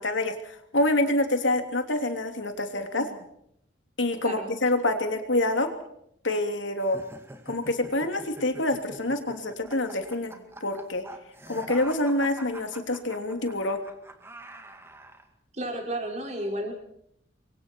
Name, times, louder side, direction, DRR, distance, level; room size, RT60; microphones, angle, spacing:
voice 1, 0.0-3.2 4.0-5.7 6.2-7.0 7.5-11.0 11.5-13.8, left 1 dB, 80° left, 6 dB, 3.2 m, -27 dB
sound 1, 6.8-15.3, right 1 dB, 15° right, 2.1 m, -45 dB
voice 2, 15.5-16.7, right 1 dB, 35° right, 1 dB, 5.7 m, -32 dB
29.0 x 24.0 x 4.6 m, 0.74 s
head